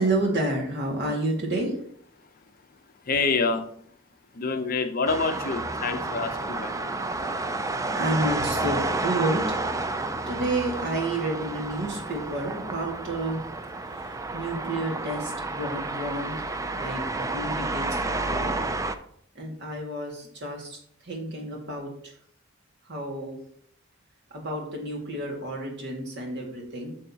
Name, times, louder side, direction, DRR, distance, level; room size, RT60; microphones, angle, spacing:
voice 1, 0.0-1.8 8.0-9.6 10.3-13.4 13.9-16.5 16.7-18.6 19.4-22.1 22.8-23.4 24.3-26.9, right 1 dB, 55° right, 0 dB, 2.0 m, -30 dB
voice 2, 3.0-3.6 4.3-6.9, left 4 dB, 45° left, 7 dB, 0.6 m, -27 dB
sound 1, 5.1-19.0, right 2 dB, 15° right, 0.4 m, -30 dB
9.2 x 6.2 x 2.8 m, 0.64 s
head